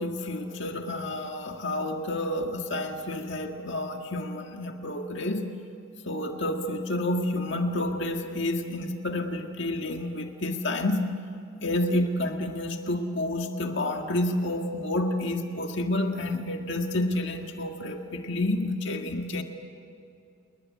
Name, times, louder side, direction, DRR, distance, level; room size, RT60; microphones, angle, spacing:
voice 1, 0.0-5.5 6.1-11.1 11.6-19.4, left 1 dB, 55° left, 3 dB, 1.8 m, -29 dB
29.0 x 21.0 x 8.4 m, 2.7 s
head